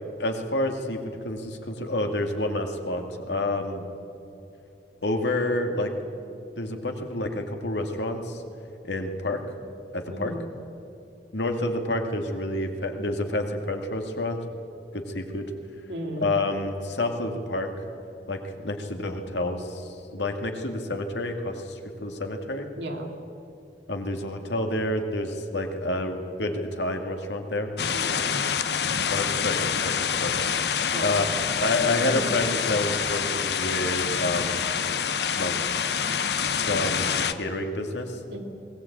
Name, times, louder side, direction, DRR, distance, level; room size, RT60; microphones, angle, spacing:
voice 1, 0.2-3.8 5.0-5.9 6.6-8.4 8.8-9.4 9.9-10.3 11.3-14.4 14.9-15.5 16.2-17.7 18.3-22.7 23.9-27.7 29.1-30.4 31.0-31.3 31.6-34.6 35.3-36.2 36.6-38.2, left 1 dB, 85° left, 4 dB, 2.3 m, -29 dB
voice 2, 10.1-10.4 15.9-16.3 22.8-23.1 27.9-28.5 30.9-31.1 38.3-38.4, equal, 80° right, 2 dB, 2.9 m, -35 dB
sound 1, 27.8-37.3, left 7 dB, 70° left, 0.9 m, -26 dB
20.5 x 18.0 x 8.7 m, 2.8 s
head